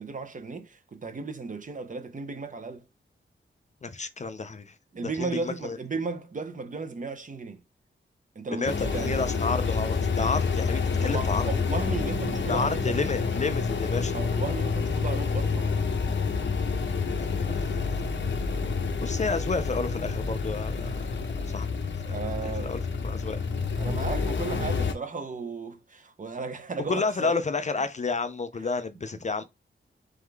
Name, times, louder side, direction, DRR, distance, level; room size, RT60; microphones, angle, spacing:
voice 1, 0.0-2.8 4.9-7.6 8.4-9.2 11.0-12.9 14.1-16.0 22.1-22.8 23.8-27.4, right 4 dB, 40° right, 0.6 m, -35 dB
voice 2, 3.8-4.7 5.1-5.8 8.5-11.5 12.5-14.2 17.2-18.1 19.0-20.9 21.5-21.7 22.4-23.4 26.9-29.4, left 4 dB, 35° left, 0.4 m, -31 dB
sound 1, 8.7-24.9, left 4 dB, 65° left, 0.7 m, -28 dB
3.6 x 3.4 x 3.3 m
wide cardioid pair, 130°, 21 cm